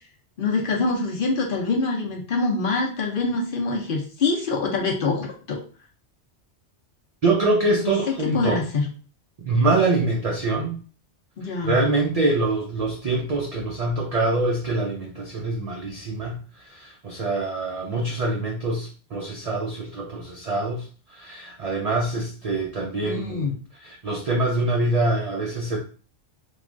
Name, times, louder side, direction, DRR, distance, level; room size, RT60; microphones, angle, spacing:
voice 1, 0.4-5.6 7.8-8.8 11.4-11.8 23.0-23.5, left 3 dB, 55° left, 0 dB, 0.7 m, -25 dB
voice 2, 7.2-8.6 9.5-10.7 11.6-16.4 16.7-20.8 21.1-23.4 23.7-25.8, right 2 dB, 65° right, -1 dB, 0.3 m, -24 dB
3.2 x 2.2 x 2.4 m, 0.39 s
omnidirectional pair, 1.2 m